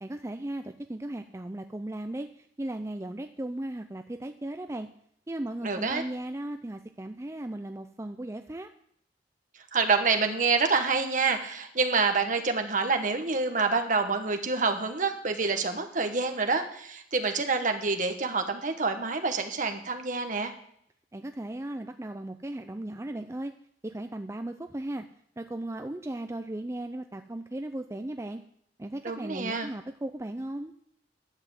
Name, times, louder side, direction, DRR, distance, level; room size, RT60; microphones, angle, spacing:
voice 1, 0.0-2.3 2.6-4.9 5.3-8.7 21.1-23.5 23.8-25.0 25.4-28.4 28.8-30.7, right 1 dB, 15° right, 7 dB, 0.5 m, -36 dB
voice 2, 5.6-6.0 9.7-20.5 29.0-29.7, right 4 dB, 45° right, 6 dB, 1.4 m, -27 dB
11.5 x 7.8 x 7.6 m, 0.69 s
head